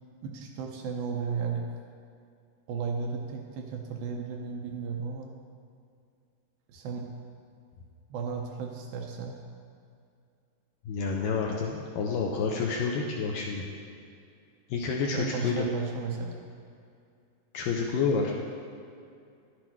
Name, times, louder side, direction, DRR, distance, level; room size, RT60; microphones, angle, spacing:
voice 1, 0.2-1.7 2.7-5.3 6.7-7.1 8.1-9.4 15.1-16.4, right 5 dB, 80° right, 1 dB, 2.3 m, -34 dB
voice 2, 10.9-13.6 14.7-15.7 17.5-18.3, left 5 dB, 80° left, -1 dB, 2.1 m, -29 dB
11.0 x 8.0 x 4.5 m, 2.4 s
omnidirectional pair, 4.6 m